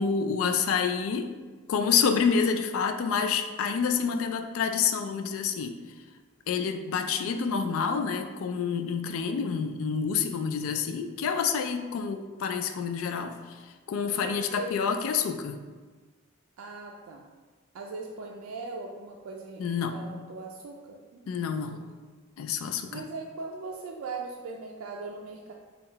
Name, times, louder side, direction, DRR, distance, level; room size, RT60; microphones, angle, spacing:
voice 1, 0.0-1.3 1.7-5.7 6.5-13.6 13.9-15.6 19.6-20.0 21.3-21.8 22.4-23.0, left 6 dB, 80° left, 8 dB, 0.3 m, -28 dB
voice 2, 14.2-14.8 16.6-17.3 17.7-21.5 22.9-25.5, right 3 dB, 85° right, 0 dB, 0.3 m, -40 dB
3.8 x 2.3 x 3.9 m, 1.4 s
head